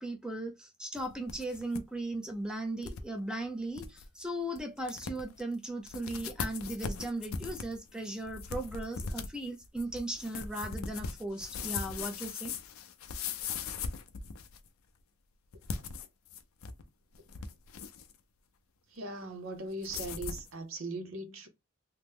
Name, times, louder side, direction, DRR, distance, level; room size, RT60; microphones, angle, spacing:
voice 1, 0.0-12.5, right 1 dB, 5° right, 0.6 m, -37 dB
sound 1, 1.0-1.8 2.1-2.2 2.8-3.0 3.4-3.5 3.8-4.1 4.6-4.7 4.9-5.4 5.8-14.7 15.5-16.8 17.1-18.1 19.8-20.5, left 5 dB, 85° left, 0.5 m, -39 dB
voice 2, 18.9-21.5, right 2 dB, 70° right, 0.8 m, -39 dB
2.9 x 2.1 x 3.4 m
head